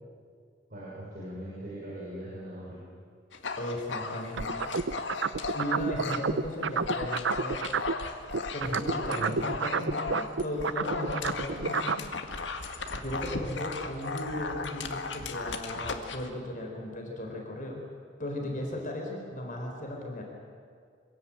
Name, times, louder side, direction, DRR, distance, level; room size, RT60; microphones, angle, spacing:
voice 1, 0.7-2.8 8.7-9.4, right 1 dB, 50° right, -7 dB, 6.1 m, -39 dB
Dog, 3.3-6.3 6.6-16.3, left 4 dB, 85° left, 1.8 m, -36 dB
voice 2, 3.6-4.6 5.5-7.6 8.5-12.1 12.9-17.9 18.2-20.2, left 1 dB, 45° left, 1 dB, 4.3 m, -36 dB
sound 1, 4.4-8.0 8.3-12.1, right 5 dB, 90° right, 0.7 m, -30 dB
25.5 x 17.0 x 8.9 m, 2.1 s
head